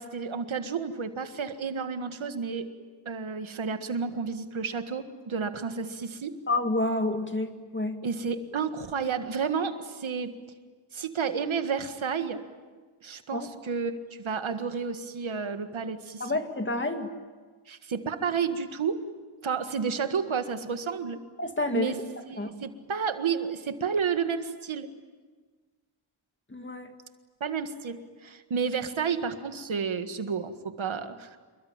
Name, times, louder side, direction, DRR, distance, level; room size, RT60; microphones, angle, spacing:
voice 1, 0.0-2.7 3.1-6.4 8.0-10.3 10.9-12.4 13.0-13.9 14.2-16.2 17.7-19.0 19.4-21.2 21.7-22.0 22.3-24.9 27.4-31.4, right 6 dB, 70° right, 8 dB, 1.8 m, -31 dB
voice 2, 6.5-8.0 13.3-13.5 16.2-17.1 21.4-22.0 22.4-22.5 26.5-26.9, left 2 dB, 25° left, 6 dB, 2.2 m, -29 dB
27.5 x 23.0 x 8.9 m, 1.4 s
wide cardioid pair, 125°, 49 cm